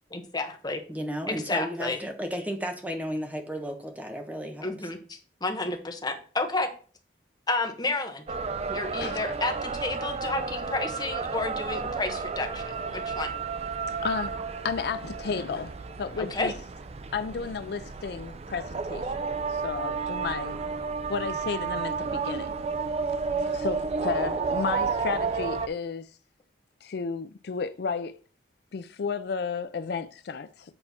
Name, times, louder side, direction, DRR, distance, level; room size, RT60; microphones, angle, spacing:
voice 1, 0.1-0.8 1.3-2.0 4.6-6.7 7.5-8.2 8.7-13.3 16.2-16.5, left 2 dB, 25° left, 1.1 m, -31 dB
voice 2, 0.9-4.7, equal, 10° right, 1.0 m, -33 dB
sound 1, 8.3-25.7, right 5 dB, 35° right, 0.5 m, -32 dB
voice 3, 14.0-16.5 17.1-19.1 19.5-20.6 21.1-22.5 23.4-26.1 26.8-28.2 28.7-30.7, left 5 dB, 65° left, 0.4 m, -33 dB
8.0 x 4.4 x 4.2 m
head